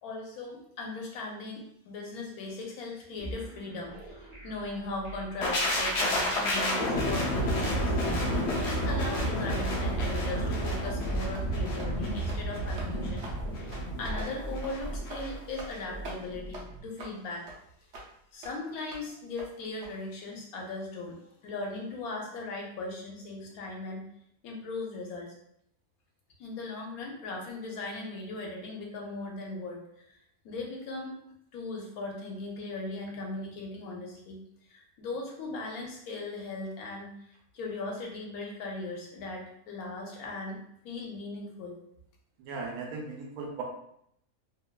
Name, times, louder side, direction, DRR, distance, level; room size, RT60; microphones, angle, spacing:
voice 1, 0.0-3.9 4.2-7.9 8.6-13.3 13.6-17.5 18.3-21.2 21.4-24.0 24.4-25.3 26.4-29.8 30.4-31.1 31.5-34.4 34.7-37.1 37.5-40.6 40.8-41.8, left 2 dB, 85° left, 0 dB, 1.1 m, -38 dB
sound 1, 3.2-16.8, right 2 dB, 30° right, 0.4 m, -41 dB
sound 2, 5.4-15.3 15.6-15.8, equal, 60° left, 0.8 m, -30 dB
sound 3, 10.9-11.0 11.3-11.5 11.8-11.9 12.2-12.4 12.8-12.9 13.2-13.4 13.7-13.8 14.2-14.3 14.6-14.8 15.1-15.2 15.6-15.8 16.0-16.2 16.5-16.6 17.0-17.1 17.5-17.6 17.9-18.1 18.4-18.5 18.9-19.0 19.4-19.5 19.8-19.9, right 2 dB, 65° right, 0.8 m, -44 dB
voice 2, 42.4-43.6, right 4 dB, 85° right, 1 dB, 1.1 m, -37 dB
2.9 x 2.1 x 2.2 m, 0.73 s
omnidirectional pair, 1.5 m